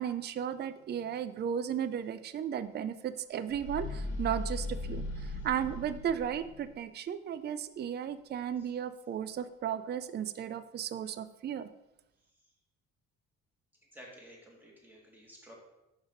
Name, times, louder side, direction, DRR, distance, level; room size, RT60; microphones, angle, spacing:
voice 1, 0.0-11.7, right 9 dB, 35° right, 13 dB, 0.4 m, -35 dB
sound 1, 3.5-6.8, left 2 dB, 90° left, 1.1 m, -38 dB
voice 2, 13.9-15.5, equal, 5° right, -3 dB, 2.0 m, -53 dB
5.2 x 5.1 x 3.8 m, 0.92 s
cardioid pair, 90°, 30 cm